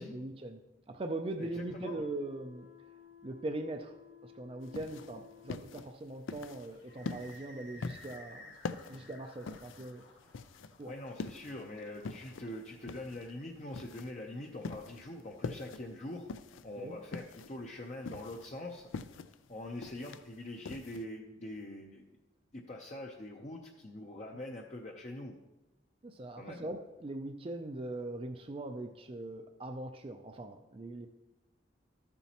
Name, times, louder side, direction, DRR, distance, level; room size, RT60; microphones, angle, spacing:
voice 1, 0.0-2.7 3.2-8.6 8.9-10.0 10.8-10.9 16.8-17.0 26.0-31.1, right 2 dB, 30° right, 5 dB, 0.4 m, -41 dB
voice 2, 1.4-2.1 8.9-9.1 10.8-16.3 16.6-19.2 19.5-22.1 22.5-25.3 26.4-26.6, left 1 dB, 35° left, 0 dB, 0.6 m, -44 dB
sound 1, 1.5-5.8, left 9 dB, 10° right, 0.8 m, -56 dB
sound 2, 4.6-21.0, left 4 dB, 90° left, 0.4 m, -44 dB
sound 3, 6.3-15.6, left 1 dB, 70° left, 1.5 m, -57 dB
13.0 x 7.0 x 2.9 m, 1.0 s
head